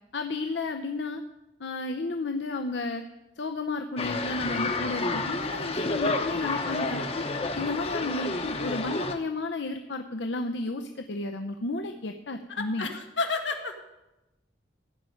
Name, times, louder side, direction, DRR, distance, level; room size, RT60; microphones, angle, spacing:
voice 1, 0.1-1.2 1.6-3.0 3.4-7.3 7.6-12.9, left 2 dB, 70° left, 5 dB, 0.7 m, -32 dB
sound 1, 4.0-9.1, left 3 dB, 30° left, 0.9 m, -30 dB
voice 2, 12.5-13.8, left 3 dB, 90° left, 4 dB, 1.6 m, -31 dB
15.5 x 5.2 x 9.1 m, 0.98 s
head